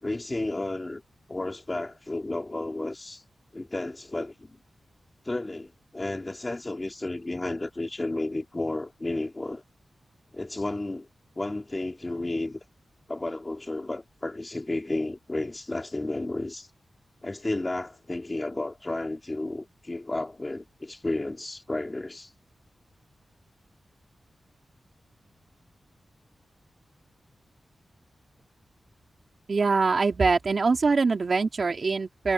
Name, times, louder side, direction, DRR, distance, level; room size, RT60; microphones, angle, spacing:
voice 1, 0.0-1.0 1.3-3.2 3.5-4.6 5.2-9.6 10.3-11.1 11.4-12.6 13.1-16.7 17.2-22.3, left 2 dB, 20° left, 2.3 m, -32 dB
voice 2, 29.5-32.3, right 4 dB, 45° right, 3.4 m, -23 dB
wide cardioid pair, 155°, 0 cm